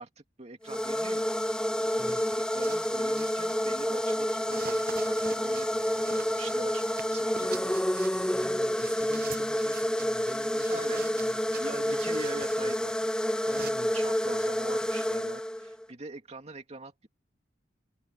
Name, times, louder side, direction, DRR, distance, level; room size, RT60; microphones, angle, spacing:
voice 1, 0.0-1.3 2.3-7.9 9.2-9.3 9.7-9.8 10.7-11.1 11.5-13.1 13.8-17.1, right 2 dB, 35° right, 2.4 m, -43 dB
sound 1, 0.6-15.8, equal, 5° left, 0.6 m, -29 dB
sound 2, 1.8-3.8 4.4-13.7, right 7 dB, 55° right, 0.8 m, -47 dB
voice 2, 2.0-2.4 8.3-12.7 13.4-13.9, equal, 10° right, 5.2 m, -47 dB
head